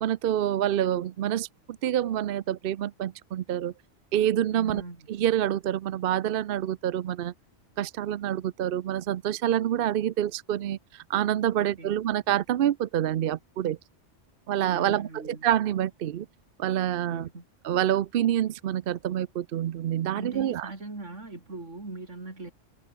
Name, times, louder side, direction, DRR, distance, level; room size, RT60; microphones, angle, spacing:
voice 1, 0.0-3.7 4.1-4.8 5.1-7.3 7.8-13.8 14.5-16.3 16.6-17.3 17.6-20.7, right 11 dB, 60° right, 0.7 m, -27 dB
voice 2, 4.5-5.1 11.6-12.0 14.7-15.5 17.1-17.4 20.1-22.5, right 2 dB, 75° right, 4.5 m, -40 dB
omnidirectional pair, 1.3 m